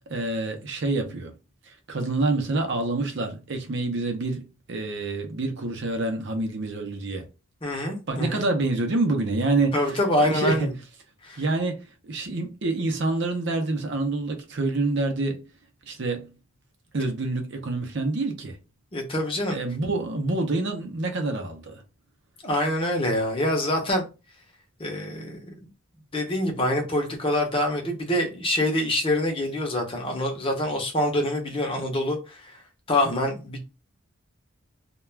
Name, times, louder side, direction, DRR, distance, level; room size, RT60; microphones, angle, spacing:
voice 1, 0.1-1.3 1.9-7.3 8.1-10.7 11.4-11.8 12.0-15.4 15.9-16.3 16.9-18.6 19.5-21.8, right 2 dB, 55° right, 0.6 m, -27 dB
voice 2, 7.6-8.5 9.7-10.7 11.2-11.4 18.9-19.6 22.4-24.1 24.8-25.5 26.1-32.6 32.9-33.6, left 1 dB, 25° left, 0.7 m, -25 dB
2.3 x 2.2 x 3.2 m
head